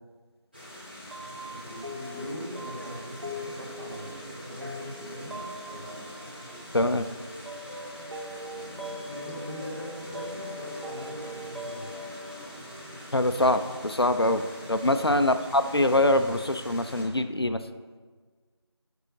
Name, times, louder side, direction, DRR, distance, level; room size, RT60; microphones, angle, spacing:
sound 1, 0.5-17.0, equal, 20° right, 1.4 m, -44 dB
sound 2, 1.1-13.7, left 1 dB, 80° right, 1.2 m, -42 dB
voice 1, 1.5-5.4 5.7-6.0 9.0-12.0 14.1-14.2 14.6-15.2, equal, 40° right, -5 dB, 2.0 m, -41 dB
Wind instrument woodwind instrument, 6.1-7.9 8.1-8.3 8.6-8.8 9.1-9.3 9.6-10.2 10.5-12.4, equal, 25° left, 1.1 m, -48 dB
voice 2, 6.7-7.1 13.1-14.4 14.7-17.6, left 1 dB, 60° left, 10 dB, 0.4 m, -24 dB
6.3 x 5.6 x 5.1 m, 1.4 s
figure-of-eight pair, 175°, 15 cm